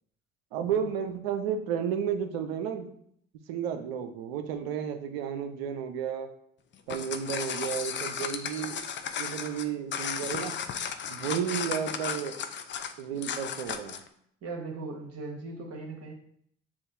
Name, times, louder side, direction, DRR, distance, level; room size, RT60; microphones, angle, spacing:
voice 1, 0.5-2.9 3.5-6.3 6.9-8.9 9.2-10.5 11.1-12.4 13.0-14.0, right 8 dB, 75° right, 7 dB, 0.6 m, -32 dB
sound 1, 6.7-14.1, left 7 dB, 40° left, 0.5 m, -35 dB
voice 2, 14.4-16.1, right 3 dB, 55° right, 1 dB, 1.4 m, -39 dB
7.1 x 2.4 x 2.6 m, 0.66 s
hypercardioid pair, 60°, 30 cm